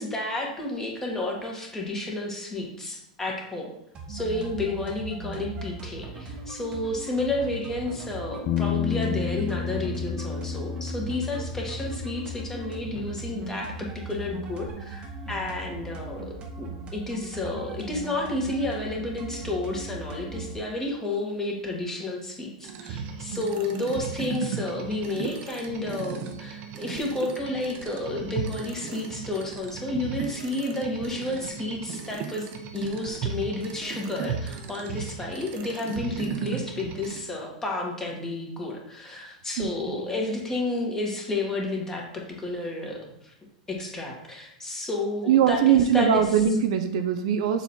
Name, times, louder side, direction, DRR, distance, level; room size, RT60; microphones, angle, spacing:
voice 1, 0.0-3.7 4.1-32.5 32.7-43.3 43.7-46.4, left 2 dB, 10° left, -1 dB, 1.9 m, -31 dB
sound 1, 3.9-20.6, right 2 dB, 25° right, 1.2 m, -39 dB
Bass guitar, 8.5-13.2 13.5-14.7, left 7 dB, 35° left, 0.7 m, -32 dB
sound 2, 22.6-37.2, right 7 dB, 45° right, 1.0 m, -36 dB
voice 2, 39.6-40.0 45.3-47.6, right 8 dB, 60° right, 7 dB, 0.7 m, -22 dB
7.1 x 4.1 x 4.4 m, 0.77 s
hypercardioid pair, 105°, 4 cm